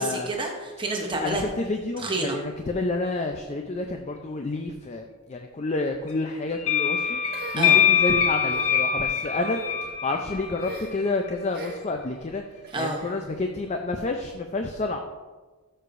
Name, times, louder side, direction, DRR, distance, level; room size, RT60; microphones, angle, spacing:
voice 1, 0.0-1.4 2.0-2.4 7.6-7.8 12.7-13.0, right 2 dB, 20° right, 1 dB, 0.8 m, -29 dB
voice 2, 1.2-7.2 7.5-9.6 10.0-12.4 12.8-15.0, left 3 dB, 30° left, 4 dB, 0.4 m, -29 dB
sound 1, 6.6-11.1, left 8 dB, 75° left, 0.9 m, -23 dB
sound 2, 7.3-8.6 9.3-9.7 10.6-11.1 11.5-12.0 12.6-13.2, right 3 dB, 45° right, 1.2 m, -40 dB
13.0 x 6.6 x 2.5 m, 1.3 s
head